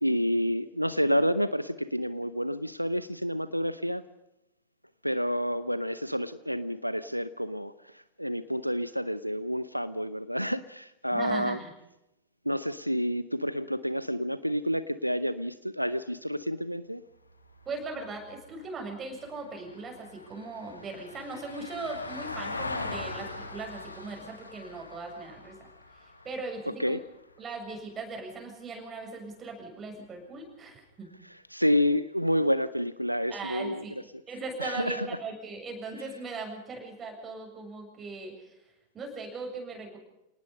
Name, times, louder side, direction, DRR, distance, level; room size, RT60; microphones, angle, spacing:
voice 1, 0.0-4.0 5.0-11.6 12.4-17.0 26.8-27.0 31.5-33.8 34.6-35.1, equal, 90° right, 15 dB, 0.7 m, -29 dB
voice 2, 11.1-11.7 17.7-25.6 25.9-27.0 27.4-31.1 33.3-34.0 34.3-38.6 38.9-40.0, right 3 dB, 20° right, 2 dB, 7.5 m, -39 dB
Vehicle, 17.3-27.7 30.0-30.1, left 2 dB, 80° left, 2.4 m, -42 dB
29.0 x 19.0 x 5.5 m, 0.91 s
figure-of-eight pair, 90°, 0 cm